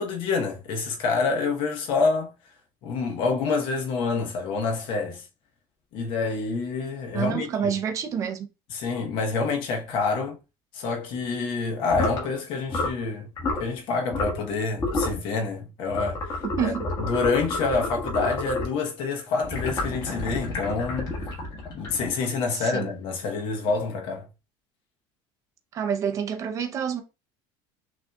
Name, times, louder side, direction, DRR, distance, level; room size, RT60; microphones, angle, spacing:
voice 1, 0.0-2.3 2.8-5.3 5.9-7.7 8.7-10.4 10.7-13.3 13.6-21.1 21.7-24.3, left 4 dB, 50° left, 1.1 m, -27 dB
voice 2, 7.1-8.5 16.6-16.9 22.5-22.9 25.7-27.0, right 7 dB, 30° right, 0.6 m, -28 dB
sound 1, 11.9-12.2 12.7-13.0 13.4-13.7 14.1-14.5 14.8-15.2 15.9-18.8 19.4-22.2, left 2 dB, 30° left, 1.6 m, -30 dB
6.1 x 2.7 x 2.3 m
cardioid pair, 170°, 11 cm